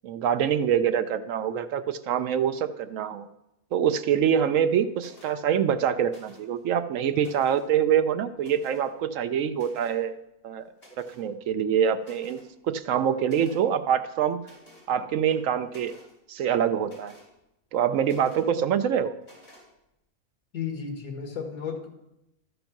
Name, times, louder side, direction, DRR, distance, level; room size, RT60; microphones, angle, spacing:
voice 1, 0.0-3.3 3.7-10.2 10.4-10.6 11.0-14.4 14.9-16.0 16.3-17.2 17.7-19.2, right 8 dB, 70° right, 11 dB, 0.9 m, -25 dB
sound 1, 5.0-5.3 6.1-6.6 7.0-7.7 8.4-8.9 9.5-10.0 10.8-11.3 11.7-11.8 12.0-12.5 13.2-13.6 14.4-14.9 15.3-16.1 16.8-17.3 18.0-18.5 19.2-19.7, left 1 dB, 25° left, 3.9 m, -53 dB
voice 2, 20.5-21.9, left 6 dB, 85° left, 3 dB, 2.0 m, -33 dB
13.0 x 5.3 x 5.8 m, 0.87 s
omnidirectional pair, 1.5 m